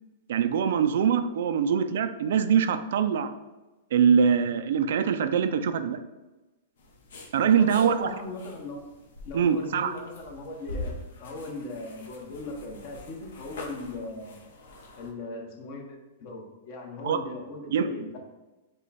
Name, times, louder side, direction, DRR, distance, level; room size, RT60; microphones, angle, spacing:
voice 1, 0.3-3.3 3.9-6.0 7.3-8.1 9.3-9.9 17.0-17.2 17.7-17.9, right 7 dB, 70° right, 10 dB, 0.3 m, -23 dB
sound 1, 6.8-15.1, left 2 dB, 75° left, 0.9 m, -44 dB
voice 2, 7.6-8.8 9.2-10.9 11.2-14.4 14.9-18.2, left 2 dB, 45° left, 1 dB, 1.0 m, -39 dB
5.0 x 2.3 x 4.1 m, 1.1 s
hypercardioid pair, 140°, 0 cm